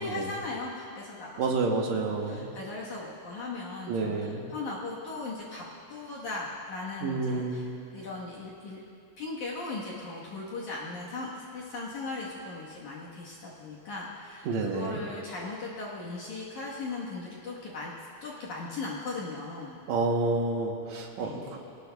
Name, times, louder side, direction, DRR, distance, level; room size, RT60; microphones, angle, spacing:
voice 1, 0.0-1.6 1.9-5.6 5.9-7.7 7.9-8.8 9.2-17.9 18.2-19.8 21.2-21.6, left 3 dB, 60° left, -5 dB, 2.4 m, -38 dB
voice 2, 1.4-2.5 3.9-4.5 7.0-7.7 14.5-15.0 19.9-21.6, right 3 dB, 65° right, 1 dB, 1.8 m, -29 dB
21.5 x 18.5 x 2.3 m, 2.5 s
omnidirectional pair, 4.5 m